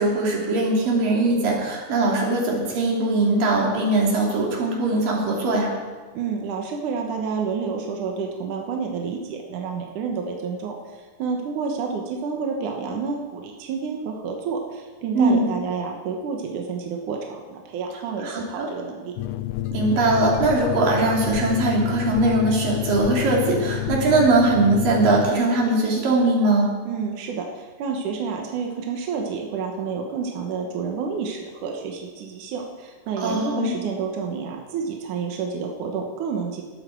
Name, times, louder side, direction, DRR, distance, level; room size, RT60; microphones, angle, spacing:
voice 1, 0.0-5.7 15.2-15.4 18.2-18.7 19.7-26.8 33.2-33.7, right 2 dB, 90° right, -2 dB, 4.6 m, -21 dB
voice 2, 6.1-19.1 26.9-36.6, right 5 dB, 70° right, 1 dB, 2.7 m, -29 dB
sound 1, 19.2-25.3, left 14 dB, 80° left, 2.1 m, -28 dB
20.0 x 12.5 x 4.6 m, 1.4 s
omnidirectional pair, 3.8 m